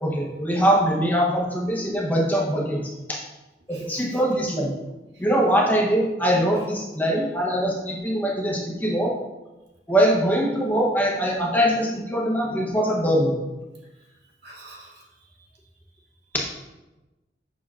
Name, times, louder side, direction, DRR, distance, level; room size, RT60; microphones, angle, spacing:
voice 1, 0.0-3.2 3.7-4.7 5.2-9.1 9.9-13.4 16.3-16.5, equal, 10° left, -2 dB, 0.8 m, -22 dB
voice 2, 3.7-4.2 5.1-5.2 14.4-15.5, right 2 dB, 65° right, -3 dB, 1.5 m, -48 dB
7.4 x 6.0 x 2.4 m, 1.1 s
head